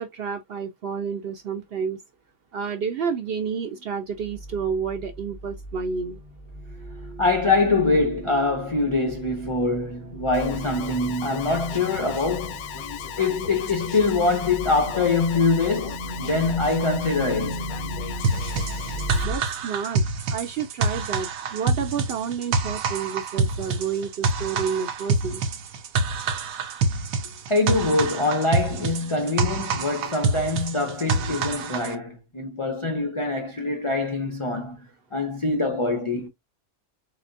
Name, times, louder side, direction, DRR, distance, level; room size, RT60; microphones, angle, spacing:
voice 1, 0.0-2.0 2.5-6.2 19.2-20.0 20.3-25.4, right 6 dB, 65° right, 0.6 m, -30 dB
sound 1, 4.2-19.4, right 1 dB, 40° right, 0.8 m, -37 dB
voice 2, 7.2-12.7 13.2-17.7 27.5-34.9 35.1-36.3, left 3 dB, 50° left, 0.3 m, -24 dB
Alarm, 10.3-19.2, left 9 dB, 85° left, 1.1 m, -36 dB
sound 2, 18.2-31.9, right 3 dB, 85° right, 1.2 m, -26 dB
4.1 x 3.1 x 2.5 m
omnidirectional pair, 1.4 m